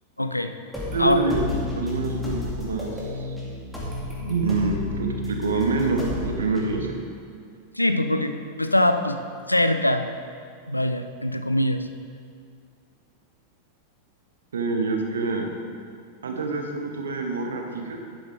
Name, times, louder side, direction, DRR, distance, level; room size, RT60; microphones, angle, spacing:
voice 1, 0.2-0.5 1.0-1.2 7.8-9.2 9.5-10.1 10.7-11.9, left 1 dB, 85° left, 9 dB, 0.5 m, -22 dB
sound 1, 0.7-6.7, left 3 dB, ahead, 2.3 m, -32 dB
voice 2, 0.9-1.5 1.7-3.3 4.2-7.0 14.5-15.5 16.2-18.0, right 3 dB, 70° right, 3 dB, 1.1 m, -26 dB
11.5 x 8.0 x 3.5 m, 2.2 s
figure-of-eight pair, 90°, 0 cm